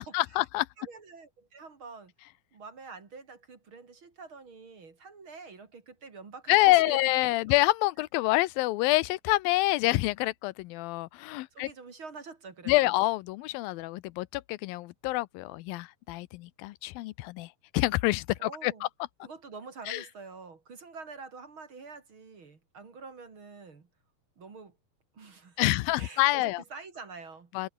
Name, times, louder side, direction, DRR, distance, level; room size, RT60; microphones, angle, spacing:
voice 1, 0.0-0.7 6.5-11.7 12.7-18.9 19.9-20.0 25.6-26.6 27.5-27.7, left 19 dB, 90° left, 2.5 m, -27 dB
voice 2, 0.8-2.1 2.5-7.1 11.5-12.9 18.4-18.9 19.2-23.9 24.4-24.8 25.1-27.5, right 4 dB, 40° right, 3.1 m, -46 dB
omnidirectional pair, 4.0 m